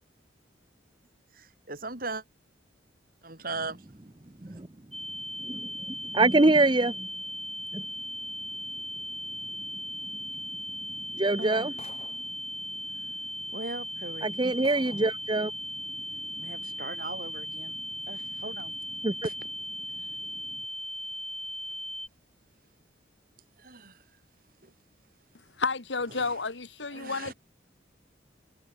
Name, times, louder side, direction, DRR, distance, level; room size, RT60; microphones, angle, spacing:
voice 1, 1.3-2.2 3.2-3.8 11.4-11.7 13.5-14.3 16.4-17.8 18.1-18.7 19.2-19.3 20.0-20.2 23.6-24.0 24.6-24.7 26.2-26.4 26.9-27.3, right 3 dB, 50° right, 5.3 m, -39 dB
sound 1, 4.9-22.1, equal, ahead, 5.0 m, -37 dB
voice 2, 5.4-7.1 7.7-7.8 11.1-11.7 14.2-15.5 19.0-19.2, right 2 dB, 25° right, 0.8 m, -24 dB
sound 2, 11.8-12.4 13.4-13.5 14.0-14.1 14.6-15.2, left 3 dB, 35° left, 5.3 m, -49 dB
voice 3, 25.6-27.3, left 4 dB, 75° left, 1.8 m, -31 dB
head